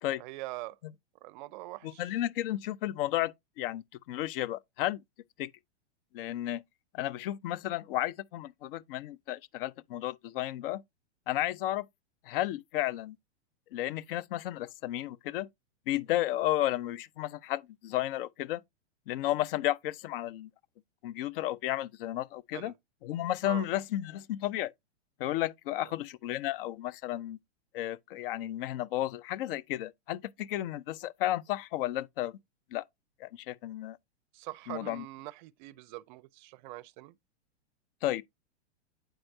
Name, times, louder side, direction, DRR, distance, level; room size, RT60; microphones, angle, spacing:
voice 1, 0.2-0.8 1.2-2.1 22.5-22.7 23.4-23.7 25.8-25.9 34.3-37.2, right 18 dB, 45° right, 0.5 m, -43 dB
voice 2, 1.8-5.0 5.4-5.5 6.1-6.6 6.9-10.8 11.3-11.9 12.3-13.2 13.7-15.5 15.9-18.6 19.1-20.5 21.0-22.7 23.0-24.7 25.2-27.4 27.7-32.4 32.7-32.8 33.2-34.0 34.7-35.0 38.0-38.2, left 14 dB, 55° left, 0.5 m, -33 dB
9.0 x 4.4 x 2.7 m
hypercardioid pair, 130°, 34 cm